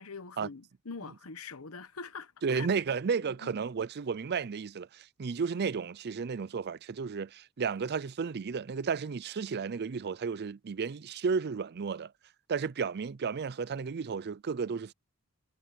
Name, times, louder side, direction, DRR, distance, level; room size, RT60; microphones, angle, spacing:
voice 1, 0.0-2.7 3.2-3.5, left 4 dB, 70° left, 1.1 m, -44 dB
voice 2, 2.4-12.1 12.5-14.9, right 5 dB, 45° right, 0.5 m, -33 dB
head